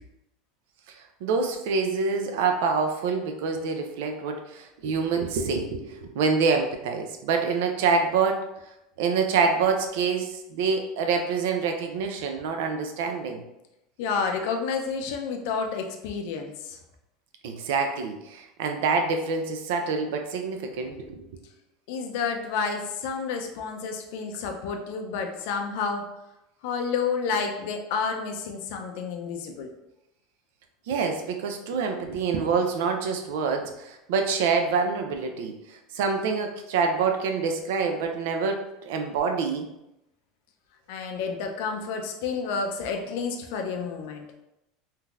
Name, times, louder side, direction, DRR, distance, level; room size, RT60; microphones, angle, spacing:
voice 1, 1.2-8.5 9.0-13.4 17.4-21.3 30.9-39.6, right 5 dB, 80° right, 4 dB, 0.5 m, -26 dB
voice 2, 14.0-16.8 21.9-26.1 26.6-29.7 40.9-44.3, left 5 dB, 70° left, 4 dB, 0.5 m, -30 dB
3.7 x 2.7 x 2.4 m, 0.89 s
supercardioid pair, 150°, 0 cm